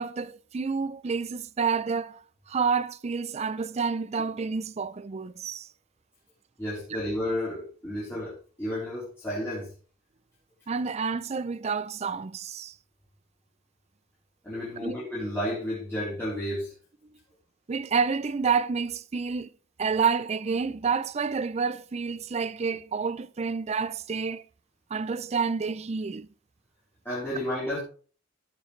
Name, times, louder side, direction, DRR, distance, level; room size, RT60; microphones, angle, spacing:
voice 1, 0.0-2.2 2.5-5.7 10.7-12.7 14.8-15.0 17.7-19.5 19.8-24.4 24.9-26.3, right 5 dB, 30° right, 0.4 m, -29 dB
voice 2, 6.6-9.7 14.4-16.7 27.0-27.8, left 1 dB, 10° left, 3.7 m, -32 dB
14.5 x 7.2 x 3.2 m
head